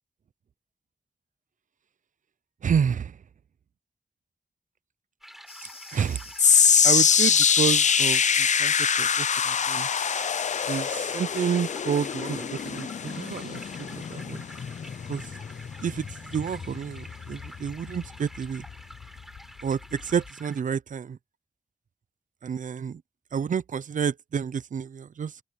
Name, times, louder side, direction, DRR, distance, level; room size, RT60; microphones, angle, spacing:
voice 1, 2.6-3.1 5.9-6.2 6.8-9.9 10.7-13.6 14.1-14.4 15.1-15.2 15.8-16.1 16.3-18.6 19.6-21.2 22.4-23.0 23.3-25.3, right 7 dB, 75° right, 0.5 m, -29 dB
sound 1, 5.2-20.6, equal, ahead, 6.0 m, -48 dB
sound 2, 5.5-11.2, left 3 dB, 45° left, 2.3 m, -45 dB
sound 3, 6.4-18.7 19.0-19.4 20.0-20.1, left 7 dB, 65° left, 0.4 m, -24 dB
open air
wide cardioid pair, 60°, 13 cm